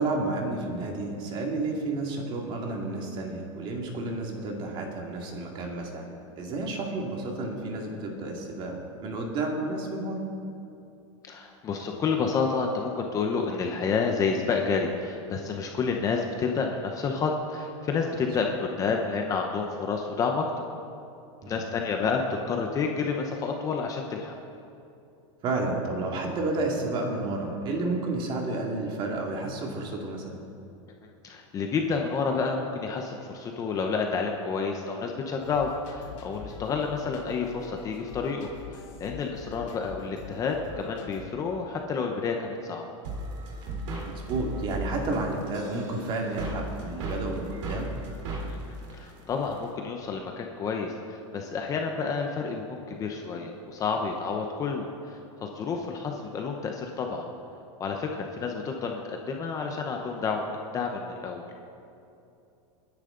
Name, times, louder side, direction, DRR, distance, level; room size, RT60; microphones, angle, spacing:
voice 1, 0.0-10.2 21.4-21.7 25.4-30.4 44.1-47.9, right 2 dB, 30° right, 0 dB, 2.4 m, -31 dB
voice 2, 11.2-20.4 21.5-24.4 31.2-42.8 48.5-57.2 57.8-61.5, left 5 dB, 20° left, 2 dB, 0.9 m, -30 dB
sound 1, 35.4-41.2, left 5 dB, 75° left, 3.3 m, -44 dB
sound 2, 43.0-49.7, right 2 dB, 70° right, 3.6 m, -36 dB
29.5 x 10.5 x 3.9 m, 2.7 s
supercardioid pair, 160°, 16 cm